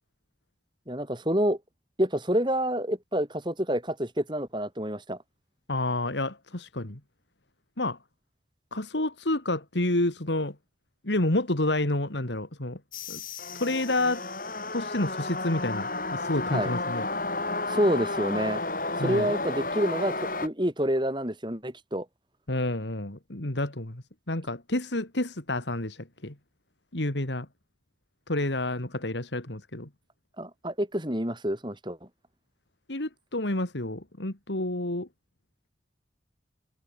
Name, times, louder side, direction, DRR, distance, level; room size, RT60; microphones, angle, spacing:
voice 1, 0.9-1.6 2.0-5.2 16.5-16.7 17.7-18.6 19.0-22.1 30.4-32.0, equal, 25° right, 5.6 m, -28 dB
voice 2, 5.7-7.0 7.8-8.0 8.7-10.6 11.0-12.8 13.1-13.2 13.5-14.2 14.7-17.0 19.0-19.3 22.5-26.4 26.9-27.5 28.3-29.9 32.9-35.1, left 1 dB, 80° left, 2.8 m, -29 dB
sound 1, 12.9-20.5, left 2 dB, 50° left, 6.9 m, -32 dB
head